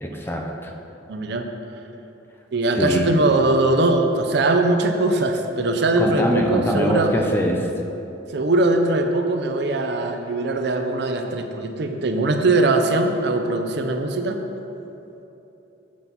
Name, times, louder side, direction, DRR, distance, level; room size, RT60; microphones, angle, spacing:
voice 1, 0.0-0.7 2.8-3.2 6.0-7.7, equal, 10° left, 1 dB, 0.5 m, -23 dB
voice 2, 1.1-1.5 2.5-7.1 8.3-14.4, right 2 dB, 60° right, 5 dB, 0.5 m, -21 dB
7.4 x 5.9 x 4.0 m, 3.0 s
head